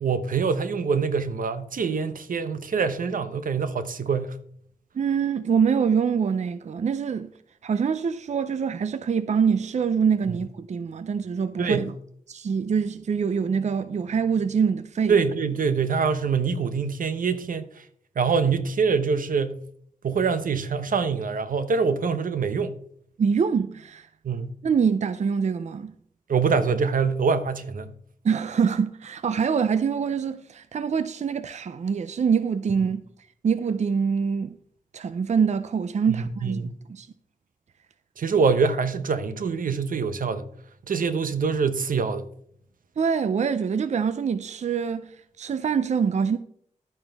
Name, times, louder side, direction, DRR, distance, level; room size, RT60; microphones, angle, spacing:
voice 1, 0.0-4.4 11.6-11.9 15.1-17.7 18.2-19.6 20.0-22.8 24.2-24.5 26.3-27.9 36.1-36.2 36.4-36.8 38.2-40.4 40.9-42.3, right 5 dB, 85° right, 0.9 m, -24 dB
voice 2, 5.0-7.3 7.6-11.9 12.3-15.2 23.2-24.1 24.6-25.9 28.2-33.0 33.4-34.6 34.9-36.6 36.9-37.1 43.0-45.1 45.4-46.4, right 6 dB, 55° right, 0.5 m, -24 dB
12.0 x 9.0 x 3.5 m
wide cardioid pair, 110°, 14 cm